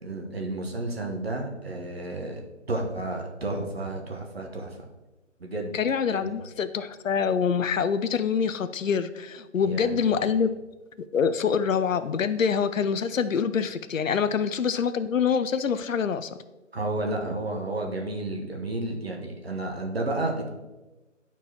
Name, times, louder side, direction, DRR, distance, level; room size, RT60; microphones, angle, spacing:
voice 1, 0.0-2.4 2.7-4.8 5.4-5.8 6.1-6.3 9.6-10.3 16.7-20.5, right 2 dB, 55° right, 1 dB, 1.2 m, -31 dB
voice 2, 5.7-10.5 11.1-16.4, left 6 dB, 85° left, 12 dB, 0.5 m, -25 dB
10.5 x 4.5 x 2.9 m, 1.1 s
figure-of-eight pair, 170°, 38 cm